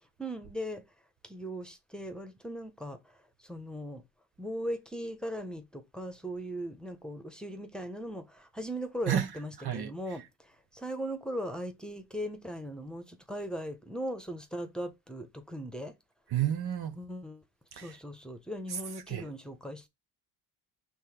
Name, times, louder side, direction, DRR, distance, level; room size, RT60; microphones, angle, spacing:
voice 1, 0.2-0.8 1.2-3.0 3.4-4.0 4.4-15.9 17.0-17.4 17.7-19.9, equal, ahead, 1.2 m, -39 dB
voice 2, 9.6-9.9 16.3-17.0 17.8-18.0 18.7-18.8 19.1-19.3, right 10 dB, 50° right, 1.0 m, -30 dB
5.5 x 3.5 x 5.0 m
hypercardioid pair, 55°, 50 cm